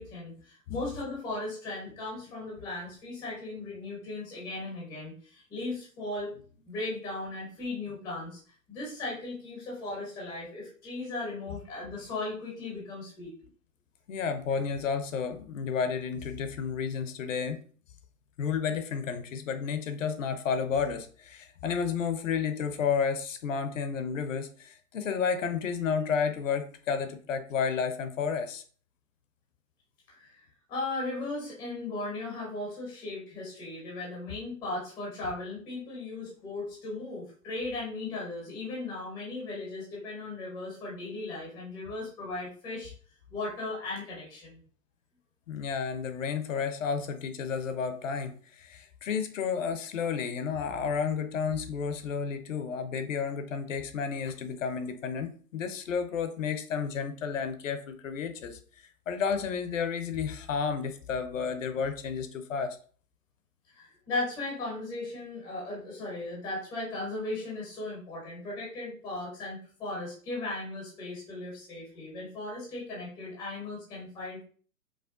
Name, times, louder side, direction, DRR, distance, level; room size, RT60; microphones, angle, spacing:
voice 1, 0.0-6.3 6.7-8.4 8.7-13.3 30.1-30.4 30.7-42.9 43.3-44.6 63.7-74.4, left 2 dB, 5° left, -4 dB, 0.4 m, -37 dB
voice 2, 14.1-17.6 18.4-28.6 45.5-58.6 59.1-62.8, left 6 dB, 55° left, 9 dB, 0.6 m, -31 dB
4.8 x 2.2 x 2.4 m, 0.43 s
figure-of-eight pair, 125°, 47 cm